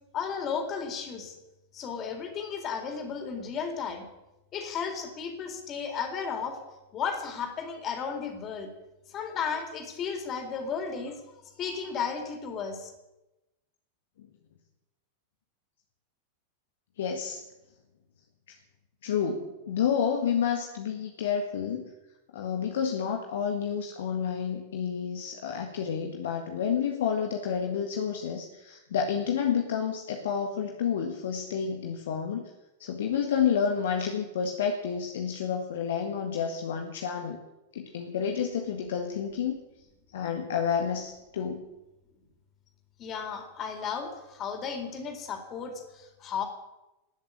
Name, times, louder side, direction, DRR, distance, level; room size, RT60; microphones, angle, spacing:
voice 1, 0.1-1.4 1.7-4.1 4.5-6.6 6.9-8.7 9.1-11.2 11.6-12.9 43.0-46.4, left 6 dB, 30° left, 4 dB, 4.1 m, -34 dB
voice 2, 17.0-17.4 19.0-21.8 22.3-32.5 32.8-37.4 37.7-39.6 40.1-41.6, left 7 dB, 60° left, 3 dB, 1.7 m, -30 dB
19.0 x 7.6 x 9.9 m, 0.99 s
figure-of-eight pair, 90°, 0 cm